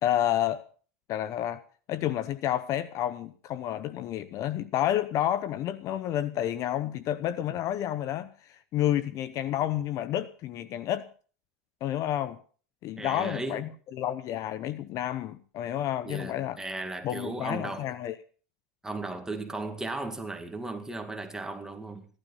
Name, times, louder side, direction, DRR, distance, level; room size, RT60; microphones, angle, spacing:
voice 1, 0.0-0.6 1.1-1.6 1.9-11.1 11.8-12.4 12.8-16.6 17.0-18.1, left 12 dB, 40° left, 0.9 m, -30 dB
voice 2, 13.0-13.6 16.0-17.9 18.8-22.1, right 2 dB, 5° right, 2.1 m, -36 dB
16.0 x 12.5 x 5.5 m
supercardioid pair, 120°, 8 cm